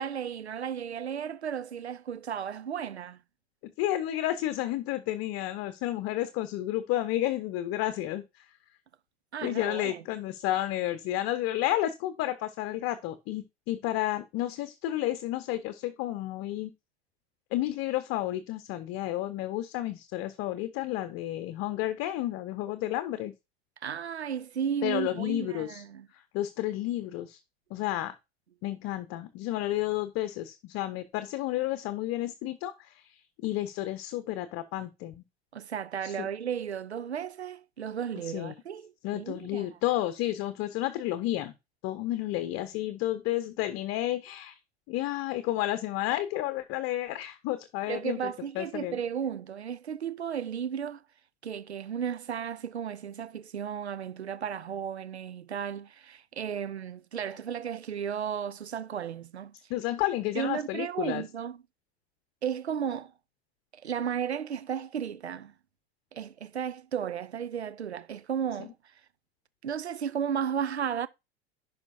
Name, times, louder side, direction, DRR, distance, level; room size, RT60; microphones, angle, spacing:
voice 1, 0.0-3.2 9.3-10.0 23.8-26.1 35.5-39.7 47.9-51.0 51.4-59.5 60.3-61.6 62.4-63.1 63.7-65.5 66.1-68.7 69.6-71.1, right 8 dB, 90° right, 0.6 m, -34 dB
voice 2, 3.6-8.5 9.4-16.7 17.5-23.3 24.8-25.8 26.1-27.4 27.7-28.1 28.6-35.2 36.0-36.3 38.2-38.5 39.0-41.5 41.8-44.6 44.9-48.2 48.5-49.0 59.7-61.2, left 14 dB, 45° left, 0.9 m, -31 dB
10.5 x 5.1 x 2.7 m
figure-of-eight pair, 85°, 32 cm